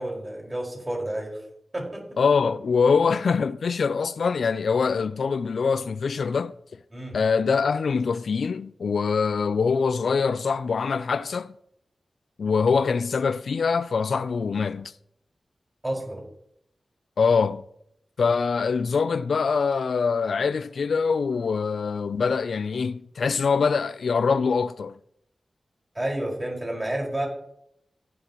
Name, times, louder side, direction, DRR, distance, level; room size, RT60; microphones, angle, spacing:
voice 1, 0.0-1.4 1.7-2.2 6.9-7.2 15.8-16.2 26.0-27.3, right 1 dB, 25° right, 5.1 m, -30 dB
voice 2, 2.2-6.5 7.1-11.6 12.4-14.9 17.2-17.6 18.2-25.0, left 5 dB, 85° left, 0.4 m, -24 dB
14.5 x 10.5 x 3.0 m
cardioid pair, 55°, 0 cm